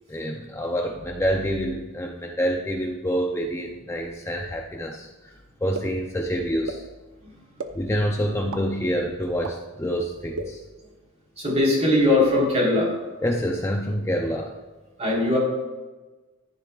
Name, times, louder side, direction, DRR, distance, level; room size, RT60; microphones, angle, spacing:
voice 1, 0.1-5.3 5.6-6.8 7.7-10.6 13.2-14.5, equal, 15° left, 2 dB, 0.6 m, -27 dB
sound 1, 5.7-5.8 6.7-6.8 7.6-7.7 8.5-8.6 9.4-9.5 10.3-10.4, right 4 dB, 85° right, 0.9 m, -30 dB
voice 2, 11.4-12.9 15.0-15.4, left 1 dB, 30° right, -3 dB, 3.8 m, -20 dB
14.5 x 10.5 x 2.4 m, 1.2 s
head